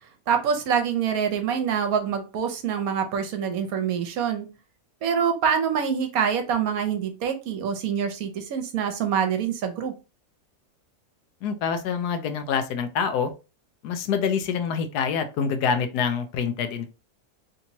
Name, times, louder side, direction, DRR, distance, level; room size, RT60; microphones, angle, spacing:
voice 1, 0.3-4.5 5.0-9.9, right 7 dB, 70° right, 1.1 m, -25 dB
voice 2, 11.4-13.3 13.8-16.9, left 6 dB, 85° left, 1.2 m, -26 dB
3.4 x 2.9 x 2.7 m
omnidirectional pair, 1.7 m